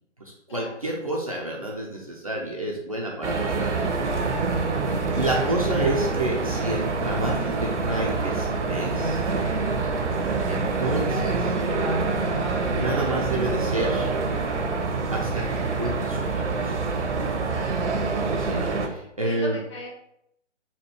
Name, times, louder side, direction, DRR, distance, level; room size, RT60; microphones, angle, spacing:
voice 1, 0.2-3.8 5.2-9.3 10.5-11.6 12.7-14.1 15.1-16.7 18.4-19.6, right 1 dB, 30° right, -3 dB, 0.4 m, -29 dB
sound 1, 3.2-18.9, right 4 dB, 70° right, 0.8 m, -26 dB
voice 2, 17.5-17.8 19.2-19.9, left 2 dB, 25° left, -2 dB, 0.8 m, -39 dB
4.2 x 2.3 x 4.5 m, 0.76 s
figure-of-eight pair, 135°, 37 cm